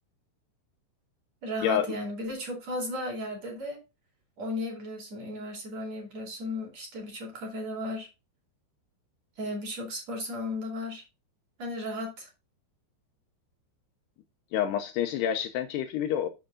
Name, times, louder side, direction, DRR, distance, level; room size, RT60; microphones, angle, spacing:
voice 1, 1.4-3.8 4.4-8.1 9.4-11.0 11.6-12.3, left 1 dB, 40° right, 3.3 m, -35 dB
voice 2, 14.5-16.3, left 9 dB, 80° left, 2.6 m, -28 dB
7.7 x 6.8 x 3.8 m
omnidirectional pair, 5.2 m